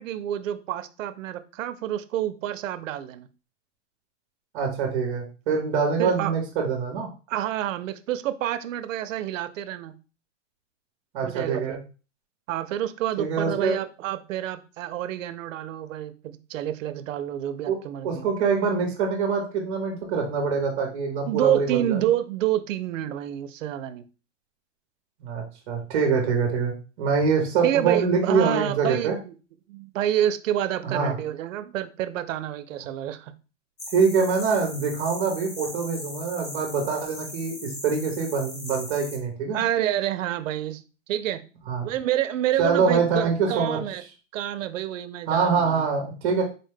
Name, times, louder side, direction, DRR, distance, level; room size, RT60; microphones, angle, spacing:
voice 1, 0.0-3.3 6.0-6.3 7.3-10.0 11.2-11.8 12.5-18.3 21.3-24.0 27.6-29.3 29.7-33.3 39.5-40.8 41.1-41.4 41.8-44.0 44.3-45.9, right 12 dB, 85° right, 11 dB, 0.5 m, -28 dB
voice 2, 4.5-7.1 11.1-11.8 13.2-13.8 17.7-17.8 18.0-22.1 25.2-29.1 30.8-31.1 33.9-39.6 41.7-41.9 42.6-43.8 45.3-46.4, right 5 dB, 25° right, 2 dB, 0.6 m, -24 dB
sound 1, 33.8-39.2, left 1 dB, 25° left, 0.4 m, -39 dB
4.1 x 2.1 x 3.2 m, 0.35 s
hypercardioid pair, 165°, 38 cm